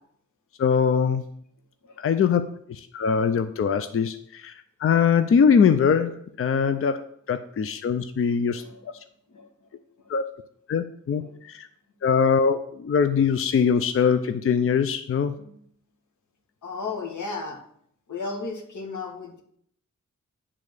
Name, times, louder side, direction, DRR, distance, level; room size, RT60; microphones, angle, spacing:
voice 1, 0.6-1.3 2.0-2.4 2.7-4.5 4.8-8.6 10.1-10.2 10.7-11.7 12.0-15.4, left 6 dB, 50° left, 10 dB, 0.5 m, -22 dB
voice 2, 16.6-17.6 18.1-19.4, left 4 dB, 90° left, 3 dB, 1.4 m, -34 dB
8.5 x 3.7 x 6.6 m, 0.66 s
wide cardioid pair, 105°, 29 cm